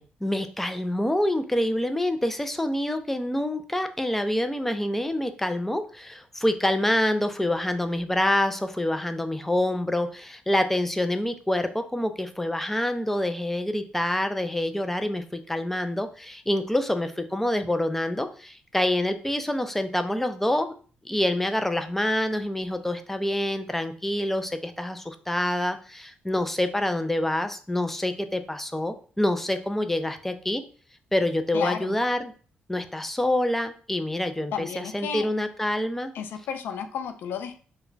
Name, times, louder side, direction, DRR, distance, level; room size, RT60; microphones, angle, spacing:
voice 1, 0.0-20.7 21.1-30.6 31.1-32.3 32.7-36.1, left 1 dB, 5° left, 8 dB, 0.3 m, -26 dB
voice 2, 31.5-32.0 34.5-35.3 36.1-37.6, left 7 dB, 75° left, 7 dB, 0.4 m, -32 dB
2.2 x 2.1 x 3.8 m, 0.41 s
cardioid pair, 90°, 4 cm